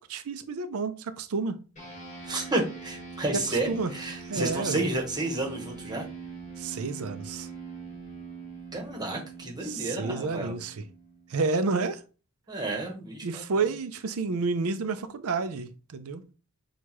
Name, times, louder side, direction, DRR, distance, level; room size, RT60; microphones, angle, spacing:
voice 1, 0.1-1.6 3.7-3.9 4.2-4.8 6.6-7.5 9.6-10.8 11.3-12.0 13.2-16.2, right 4 dB, 75° right, 0.5 m, -30 dB
sound 1, 1.8-11.5, right 5 dB, 35° left, 1.6 m, -42 dB
voice 2, 2.2-6.1 8.7-10.5 12.5-13.4, right 2 dB, 20° right, 1.2 m, -31 dB
6.3 x 2.4 x 3.0 m
head